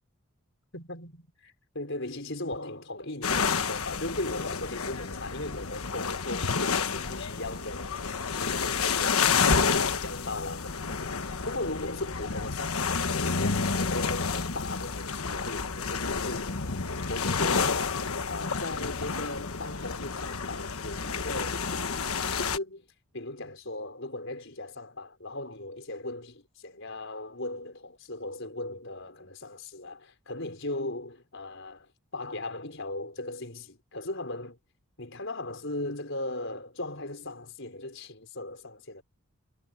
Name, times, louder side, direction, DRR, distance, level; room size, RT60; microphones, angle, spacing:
voice 1, 0.7-34.6 35.0-39.0, left 2 dB, 55° left, 5.9 m, -38 dB
sound 1, 3.2-22.6, left 5 dB, 75° left, 1.3 m, -30 dB
head